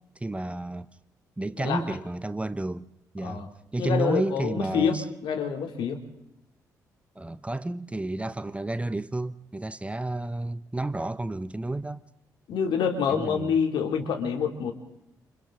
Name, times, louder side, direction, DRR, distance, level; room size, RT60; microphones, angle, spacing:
voice 1, 0.2-0.9 1.4-2.9 3.1-5.0 7.2-12.0 13.1-13.6, right 2 dB, 15° right, 0.9 m, -31 dB
voice 2, 1.6-2.0 3.2-3.5 3.8-6.0 12.5-14.7, left 6 dB, 60° left, 3.0 m, -27 dB
29.0 x 27.5 x 3.8 m
figure-of-eight pair, 40°, 9 cm